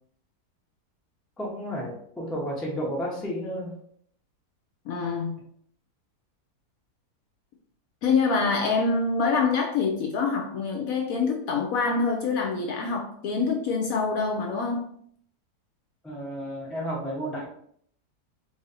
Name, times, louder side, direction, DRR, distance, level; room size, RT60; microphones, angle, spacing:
voice 1, 1.4-3.7 16.0-17.5, equal, ahead, -3 dB, 0.3 m, -32 dB
voice 2, 4.9-5.3 8.0-14.8, left 4 dB, 70° left, 2 dB, 0.8 m, -25 dB
3.0 x 2.5 x 4.1 m, 0.64 s
omnidirectional pair, 1.8 m